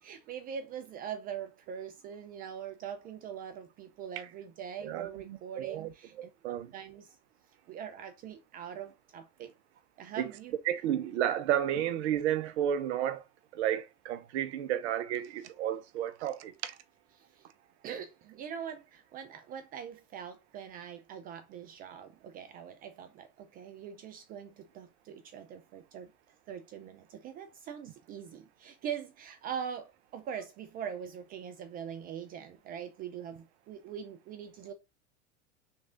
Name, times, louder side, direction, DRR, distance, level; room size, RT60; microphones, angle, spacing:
voice 1, 0.0-7.1 7.7-9.5 10.0-10.5 17.1-17.5 17.8-26.1 26.5-34.7, right 8 dB, 25° right, 0.3 m, -42 dB
voice 2, 4.8-5.2 5.6-5.9 6.2-6.7 10.2-10.3 10.7-13.2 13.5-16.8, right 11 dB, 60° right, 0.7 m, -32 dB
3.2 x 2.5 x 3.5 m
hypercardioid pair, 95°, 37 cm